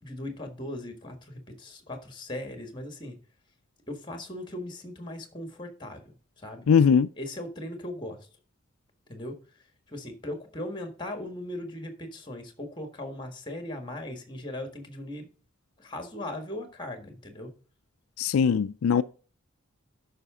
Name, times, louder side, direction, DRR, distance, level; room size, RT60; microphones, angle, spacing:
voice 1, 0.0-3.2 3.9-6.0 6.4-6.7 7.2-8.3 9.1-9.4 9.9-15.3 15.8-17.5, left 1 dB, 20° left, 1.6 m, -38 dB
voice 2, 6.7-7.1 18.2-19.0, left 6 dB, 85° left, 0.4 m, -20 dB
12.5 x 5.7 x 3.7 m
head